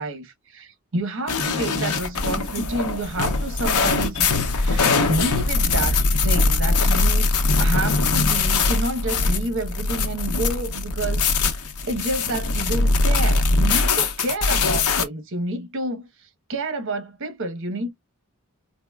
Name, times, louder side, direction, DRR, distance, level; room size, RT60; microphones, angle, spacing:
voice 1, 0.0-6.0 6.2-7.3 7.6-17.9, right 2 dB, 60° right, 1.1 m, -29 dB
sound 1, 1.3-15.0, left 3 dB, 80° left, 0.7 m, -21 dB
4.0 x 2.8 x 2.3 m
head